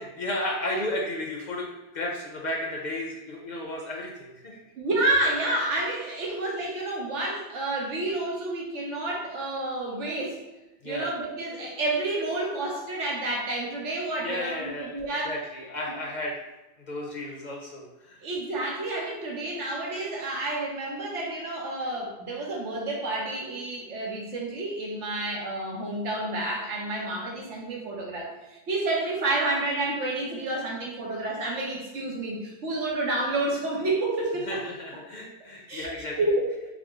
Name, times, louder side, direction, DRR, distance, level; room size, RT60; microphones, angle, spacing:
voice 1, 0.0-1.7 1.9-4.6 10.8-11.1 14.2-14.9 15.2-16.4 16.9-18.2 34.5-36.2, left 1 dB, 50° left, -2 dB, 0.7 m, -33 dB
voice 2, 4.8-10.4 10.8-15.4 18.2-34.6 35.7-36.6, right 2 dB, 90° right, -1 dB, 1.2 m, -29 dB
4.8 x 2.0 x 3.6 m, 1.1 s
omnidirectional pair, 1.2 m